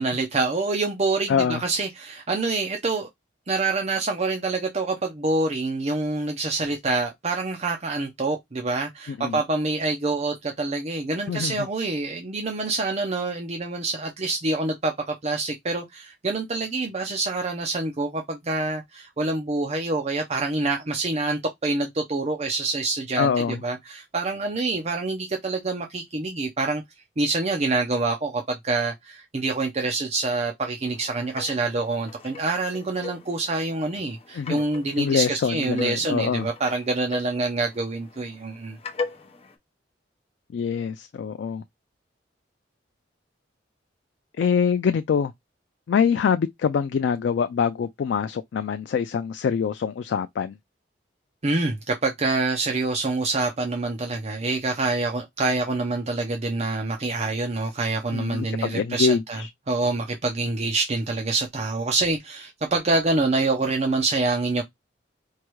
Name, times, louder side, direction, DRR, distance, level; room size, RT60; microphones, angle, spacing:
voice 1, 0.0-3.1 3.5-26.8 27.2-38.8 51.4-59.4 59.7-64.6, right 3 dB, 35° right, 0.6 m, -26 dB
voice 2, 1.3-1.6 9.1-9.4 11.3-11.7 23.2-23.6 34.3-34.6 35.0-36.5 40.5-41.6 44.4-45.3 45.9-50.6 58.1-59.5, left 6 dB, 65° left, 0.3 m, -24 dB
sound 1, 30.8-39.6, left 4 dB, 35° left, 0.8 m, -40 dB
4.6 x 2.3 x 3.0 m
head